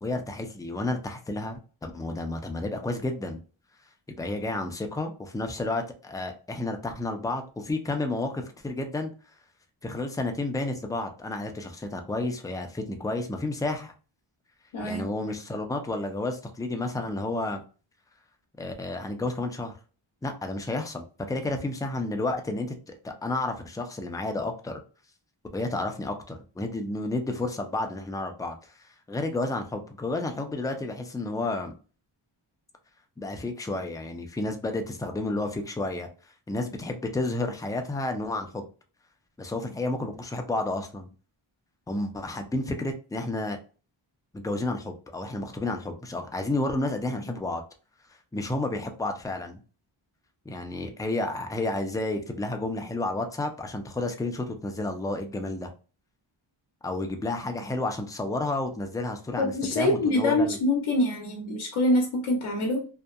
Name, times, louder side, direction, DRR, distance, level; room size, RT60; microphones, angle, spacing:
voice 1, 0.0-3.4 4.2-9.1 9.8-13.9 14.8-17.6 18.6-19.7 20.2-24.8 25.5-31.7 33.2-36.1 36.5-38.7 39.4-41.1 41.9-43.6 44.3-47.6 48.3-49.6 50.5-55.7 56.8-60.6, left 2 dB, 10° left, 0.3 m, -31 dB
voice 2, 14.7-15.1 59.4-62.9, left 1 dB, 80° left, 0.7 m, -25 dB
2.7 x 2.1 x 2.3 m
wide cardioid pair, 105°, 48 cm